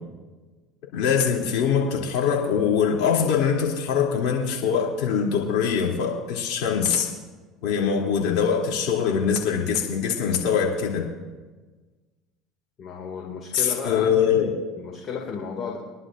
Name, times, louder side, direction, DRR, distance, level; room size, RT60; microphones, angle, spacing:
voice 1, 0.9-7.1 7.6-11.0 13.5-14.6, left 7 dB, 75° left, -3 dB, 2.9 m, -23 dB
voice 2, 12.8-14.2 14.8-15.8, left 6 dB, 45° left, -1 dB, 2.3 m, -33 dB
24.0 x 11.0 x 2.6 m, 1.3 s
supercardioid pair, 95°, 0 cm